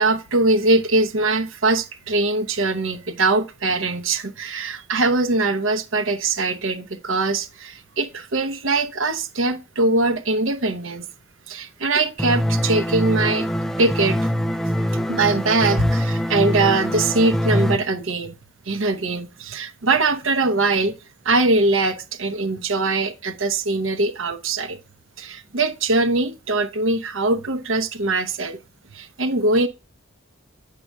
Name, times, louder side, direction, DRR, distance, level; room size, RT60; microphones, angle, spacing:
voice 1, 0.0-11.1 11.5-13.5 13.8-14.2 15.1-18.3 18.7-20.9 21.2-24.8 25.2-28.6 28.9-29.7, right 3 dB, 75° right, 0.8 m, -22 dB
sound 1, 12.2-17.8, equal, ahead, 0.3 m, -23 dB
8.5 x 6.4 x 2.3 m
head